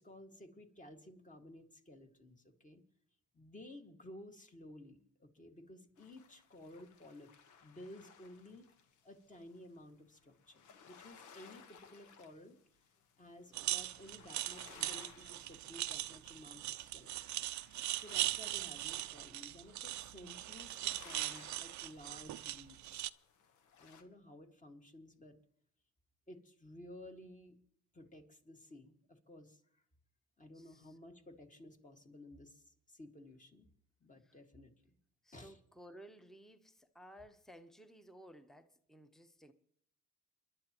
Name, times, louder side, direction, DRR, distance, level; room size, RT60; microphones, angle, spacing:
voice 1, 0.0-2.8 3.3-7.3 7.6-8.7 9.0-10.6 10.9-12.6 13.2-17.4 17.9-23.0 23.8-25.4 26.3-27.6 27.9-29.8 30.4-33.7 34.0-35.0 35.3-35.6, left 1 dB, 25° left, 1.9 m, -55 dB
sound 1, 6.0-24.0, left 7 dB, 80° left, 1.3 m, -61 dB
sound 2, 13.5-23.1, right 15 dB, 70° right, 0.5 m, -40 dB
voice 2, 30.5-30.9 34.2-34.4 35.2-39.5, equal, ahead, 1.0 m, -57 dB
28.5 x 11.0 x 3.0 m
cardioid pair, 90°, 30 cm